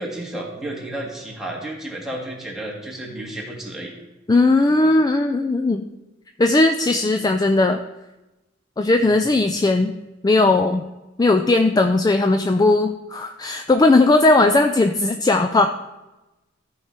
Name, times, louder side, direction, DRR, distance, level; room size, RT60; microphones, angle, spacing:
voice 1, 0.0-3.9 4.7-4.9 9.0-9.2, right 1 dB, ahead, -3 dB, 1.8 m, -32 dB
voice 2, 4.3-5.9 6.4-7.8 8.8-9.9 10.2-10.8 11.2-15.7, left 2 dB, 20° left, 6 dB, 0.3 m, -17 dB
14.0 x 4.8 x 4.4 m, 1.0 s
head